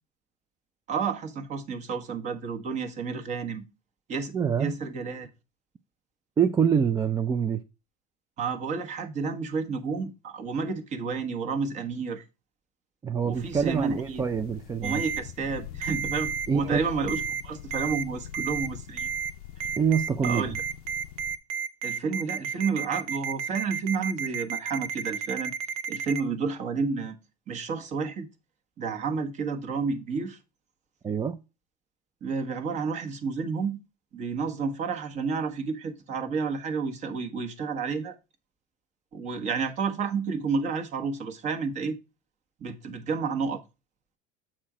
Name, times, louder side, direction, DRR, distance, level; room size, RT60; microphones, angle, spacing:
voice 1, 0.9-3.6 4.1-4.3 4.6-5.3 8.4-12.2 13.2-14.3 14.8-19.1 19.6-19.8 20.2-20.5 21.8-25.5 25.9-27.2 27.5-28.3 28.8-30.4 32.2-33.8 34.1-38.1 39.1-42.0 42.6-43.6, right 5 dB, 40° right, 1.2 m, -30 dB
voice 2, 4.3-4.7 6.4-7.6 13.0-15.0 16.5-16.8 19.8-20.5 31.0-31.4, right 7 dB, 20° right, 0.4 m, -25 dB
sound 1, 13.3-21.4, left 11 dB, 85° left, 0.5 m, -43 dB
Ringtone, 14.8-15.2 15.8-16.5 17.1-17.4 17.7-18.0 18.3-18.7 19.0-19.3 19.6-26.2, right 7 dB, 75° right, 0.8 m, -31 dB
7.5 x 4.4 x 4.9 m
supercardioid pair, 120°, 19 cm